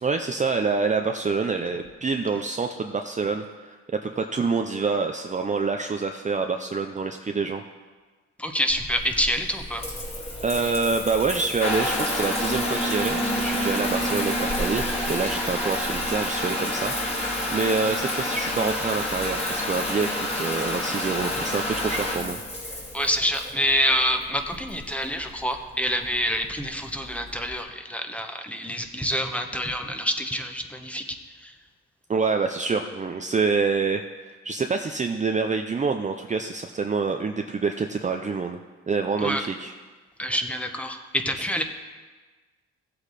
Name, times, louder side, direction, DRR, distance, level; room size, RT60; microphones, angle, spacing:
voice 1, 0.0-7.6 10.4-22.4 32.1-38.6 38.9-39.7, right 4 dB, 25° right, 4 dB, 0.6 m, -27 dB
voice 2, 8.4-9.8 22.9-31.0 31.4-31.5 39.2-39.4 40.2-41.6, equal, 5° left, 5 dB, 1.1 m, -27 dB
Water tap faucet / Bathtub (filling or washing) / Trickle dribble, 8.7-27.6, left 1 dB, 20° left, 2.4 m, -29 dB
15.5 x 8.1 x 4.2 m, 1.3 s
cardioid pair, 90°, 30 cm